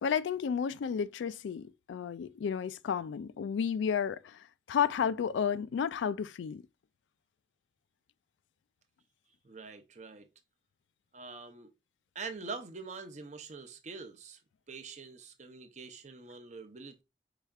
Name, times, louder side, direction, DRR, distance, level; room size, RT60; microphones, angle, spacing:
voice 1, 0.0-6.6, left 7 dB, 80° left, 0.3 m, -32 dB
voice 2, 9.4-10.3 11.1-11.7 12.1-14.4 14.7-17.0, right 4 dB, 40° right, 0.6 m, -44 dB
4.8 x 4.4 x 2.3 m
head